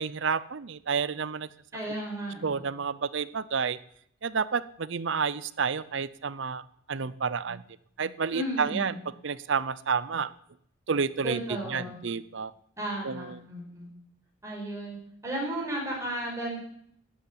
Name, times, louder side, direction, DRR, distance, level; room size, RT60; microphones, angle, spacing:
voice 1, 0.0-1.5 2.4-3.8 4.2-7.6 8.0-8.9 9.2-10.3 10.9-12.5 13.0-13.4, right 5 dB, 60° right, 17 dB, 0.6 m, -30 dB
voice 2, 1.7-2.6 8.3-9.0 11.2-12.0 12.8-13.9 14.4-15.0 15.2-16.6, right 1 dB, 15° right, -2 dB, 5.3 m, -34 dB
13.5 x 8.1 x 10.0 m, 0.69 s
head